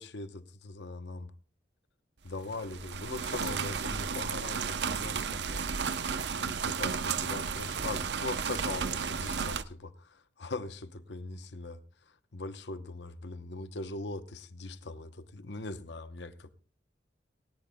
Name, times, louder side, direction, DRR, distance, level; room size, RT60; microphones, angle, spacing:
voice 1, 0.0-1.3 2.2-6.0 6.4-16.5, left 2 dB, 70° left, 0.9 m, -41 dB
sound 1, 2.4-9.6, right 6 dB, 65° right, 0.7 m, -33 dB
19.0 x 17.5 x 2.2 m
head